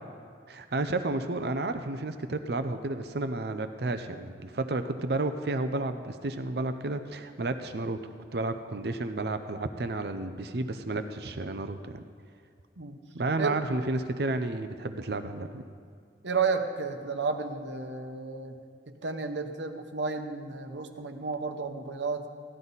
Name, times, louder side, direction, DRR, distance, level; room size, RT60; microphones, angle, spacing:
voice 1, 0.5-8.0 8.3-12.0 13.1-15.6, right 2 dB, 60° right, 9 dB, 0.6 m, -31 dB
voice 2, 16.2-18.6 19.0-22.3, right 4 dB, 80° right, 6 dB, 1.0 m, -32 dB
16.0 x 11.5 x 4.1 m, 2.3 s
head